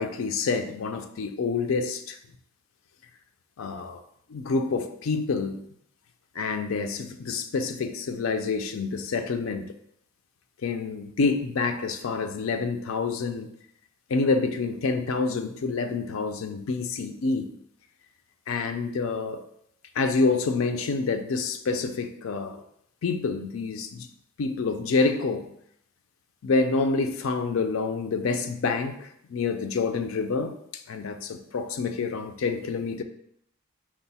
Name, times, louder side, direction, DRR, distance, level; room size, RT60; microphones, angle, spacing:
voice 1, 0.0-2.2 3.6-4.0 4.3-5.6 6.4-9.7 10.6-13.5 14.1-17.5 18.5-19.4 20.0-22.6 23.0-24.1 24.4-25.5 26.4-30.5 30.9-33.0, left 4 dB, 70° left, 7 dB, 0.4 m, -27 dB
4.8 x 2.0 x 4.0 m, 0.70 s
head